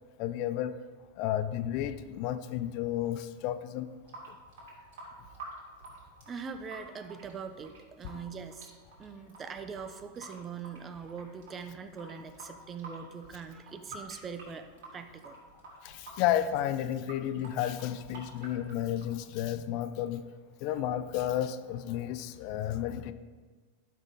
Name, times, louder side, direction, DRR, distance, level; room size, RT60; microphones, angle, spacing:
voice 1, 0.2-0.7 1.2-3.9 15.8-20.2 20.6-23.1, left 11 dB, 50° left, 12 dB, 0.5 m, -32 dB
Water tap faucet / Sink (filling or washing) / Drip, 3.9-19.8, right 2 dB, 65° right, 3.0 m, -50 dB
voice 2, 6.3-8.7 9.0-14.7 14.9-15.4, right 6 dB, 25° right, 9 dB, 0.8 m, -42 dB
11.0 x 6.2 x 4.1 m, 1.4 s
hypercardioid pair, 95°, 0 cm